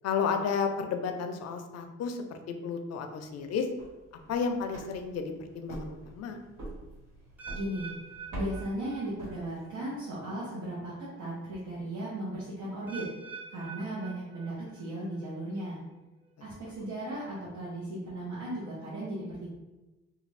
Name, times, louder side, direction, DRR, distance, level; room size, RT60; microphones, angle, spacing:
voice 1, 0.0-3.7 4.3-6.4, left 6 dB, 60° left, 6 dB, 0.4 m, -32 dB
sound 1, 3.6-9.9, right 1 dB, 85° right, 1.4 m, -45 dB
sound 2, 7.4-9.4 9.7-10.1 10.8-10.9 12.9-14.8 15.1-15.6 16.2-16.3, right 6 dB, 5° right, 0.5 m, -46 dB
voice 2, 7.5-8.0 8.3-13.1 13.5-15.8 16.4-19.5, right 1 dB, 70° right, -9 dB, 0.9 m, -36 dB
2.4 x 2.3 x 3.2 m, 1.1 s
cardioid pair, 90°, 30 cm